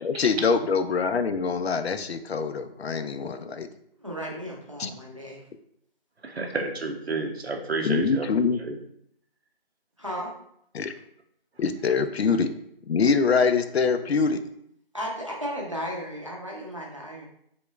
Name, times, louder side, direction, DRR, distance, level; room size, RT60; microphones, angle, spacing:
voice 1, 0.0-3.7 4.8-4.9 7.8-8.6 10.7-10.9 11.6-12.5 12.9-14.4, left 5 dB, 85° left, 9 dB, 0.5 m, -24 dB
voice 2, 4.0-5.4 10.0-10.3 14.9-17.3, equal, 30° right, -3 dB, 0.6 m, -34 dB
voice 3, 6.2-8.3 8.6-8.7, right 3 dB, 85° right, 3 dB, 0.8 m, -30 dB
3.5 x 3.0 x 2.3 m, 0.72 s
figure-of-eight pair, 175°, 31 cm